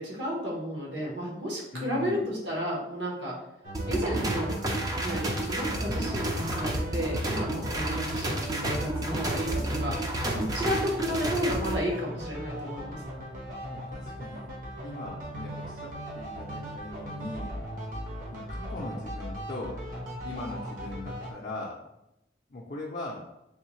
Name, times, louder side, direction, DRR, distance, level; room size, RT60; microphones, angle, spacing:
voice 1, 0.0-3.3 3.9-4.6 5.0-13.0, equal, 70° right, -3 dB, 1.3 m, -32 dB
voice 2, 1.7-2.2 13.7-14.5 14.8-17.5 18.3-19.8 20.2-21.8 22.5-23.3, left 2 dB, 40° left, -3 dB, 0.5 m, -39 dB
sound 1, 3.6-21.3, equal, 45° right, 0.8 m, -39 dB
sound 2, 3.7-11.7, right 1 dB, 20° right, 0.4 m, -31 dB
3.5 x 3.1 x 3.1 m, 0.87 s
head